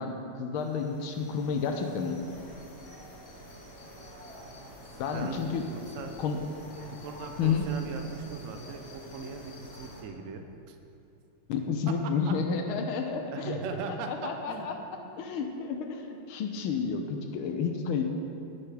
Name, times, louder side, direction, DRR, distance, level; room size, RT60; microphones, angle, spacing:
voice 1, 0.0-2.2 5.0-5.6 6.2-6.4 7.4-7.6 11.5-13.6 14.1-14.7 15.2-18.0, left 6 dB, 85° left, 4 dB, 1.6 m, -30 dB
sound 1, 0.6-10.0, equal, 40° left, 1.4 m, -47 dB
voice 2, 5.1-6.1 6.9-10.8 11.9-12.0 12.2-12.3 13.3-14.7 15.0-15.2, right 4 dB, 65° right, 5 dB, 0.7 m, -39 dB
17.0 x 5.9 x 3.3 m, 2.7 s
omnidirectional pair, 2.2 m